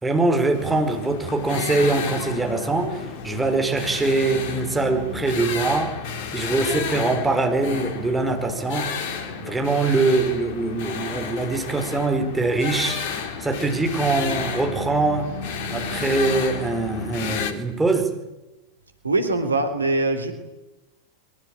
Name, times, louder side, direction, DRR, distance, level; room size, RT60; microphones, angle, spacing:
voice 1, 0.0-6.0 6.3-8.9 9.4-13.0 13.4-15.3 15.7-18.1, right 3 dB, 10° right, 4 dB, 4.8 m, -23 dB
sound 1, 0.5-17.5, left 5 dB, 50° left, 3.3 m, -31 dB
voice 2, 19.0-20.3, right 2 dB, 75° right, 8 dB, 3.6 m, -22 dB
23.5 x 23.5 x 8.9 m, 0.99 s
figure-of-eight pair, 90°, 0 cm